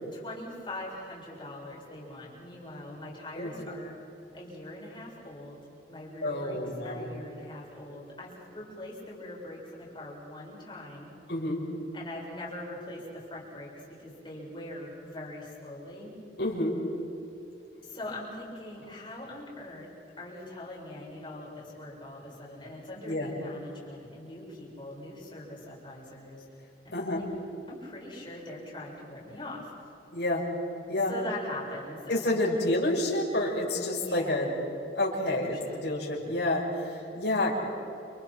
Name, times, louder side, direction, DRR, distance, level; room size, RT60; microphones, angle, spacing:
voice 1, 0.1-4.0 4.3-5.6 5.9-6.6 6.8-11.1 11.9-16.2 17.8-19.9 20.2-26.5 26.8-27.2 27.7-29.7 31.1-32.6 34.0-34.5 35.3-35.8, left 1 dB, 30° left, -4 dB, 7.3 m, -42 dB
voice 2, 6.2-7.1 11.3-11.6 16.4-16.8 23.0-23.3 26.9-27.2 30.1-30.5 30.9-31.1 32.1-34.5 34.9-37.6, left 1 dB, 75° left, -3 dB, 6.3 m, -29 dB
30.0 x 29.0 x 4.7 m, 2.9 s
head